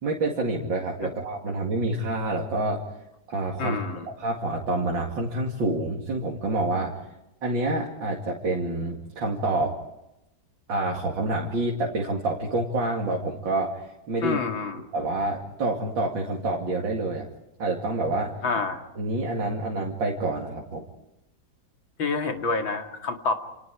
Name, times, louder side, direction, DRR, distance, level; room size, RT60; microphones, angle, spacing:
voice 1, 0.0-2.8 3.3-3.8 4.2-7.0 7.4-9.8 10.7-13.8 14.1-14.4 14.9-17.3 17.6-18.3 19.0-20.8, right 2 dB, 75° right, -1 dB, 3.2 m, -27 dB
voice 2, 3.6-4.1 14.2-14.8 18.4-18.8 22.0-23.3, left 4 dB, 85° left, 4 dB, 3.0 m, -28 dB
29.5 x 28.5 x 4.9 m, 0.91 s
omnidirectional pair, 2.1 m